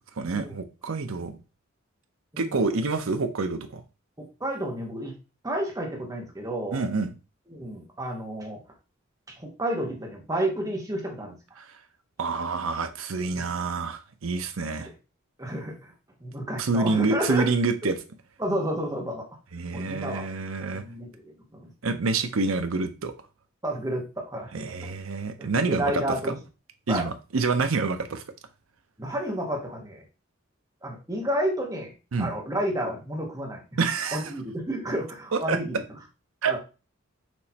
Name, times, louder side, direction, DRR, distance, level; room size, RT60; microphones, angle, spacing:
voice 1, 0.2-1.4 2.4-3.8 6.7-7.1 11.6-11.7 12.2-14.9 16.6-18.0 19.5-20.8 21.8-23.1 24.5-26.4 26.9-28.2 32.1-32.3 33.8-34.3 35.3-35.6 36.4-36.5, right 3 dB, 80° right, 0.7 m, -27 dB
voice 2, 4.2-5.2 5.4-6.8 7.5-8.6 9.3-11.4 13.3-13.5 15.4-15.9 16.2-17.5 18.4-19.3 19.7-20.3 20.6-21.7 23.6-24.5 24.8-24.9 25.4-26.4 26.9-27.0 29.0-30.0 30.8-31.9 32.2-33.6 34.1-35.8 36.5-36.6, right 1 dB, 15° right, 1.2 m, -31 dB
6.1 x 3.1 x 2.8 m
head